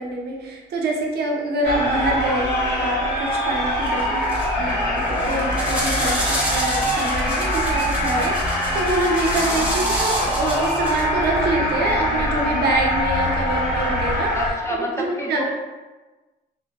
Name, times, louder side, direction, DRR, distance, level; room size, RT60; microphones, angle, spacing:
voice 1, 0.0-4.2 4.6-14.4 14.7-15.4, right 2 dB, 65° right, 0 dB, 0.6 m, -25 dB
sound 1, 1.6-14.5, equal, 65° left, 1.0 m, -23 dB
sound 2, 3.8-4.0 4.3-4.7 5.1-11.0, equal, 5° right, 1.0 m, -29 dB
voice 2, 3.9-4.2 9.4-9.7 14.3-15.5, equal, 15° left, -2 dB, 0.5 m, -30 dB
sound 3, 4.6-14.2, left 1 dB, 40° left, 1.0 m, -37 dB
2.1 x 2.1 x 2.8 m, 1.2 s
supercardioid pair, 65°, 18 cm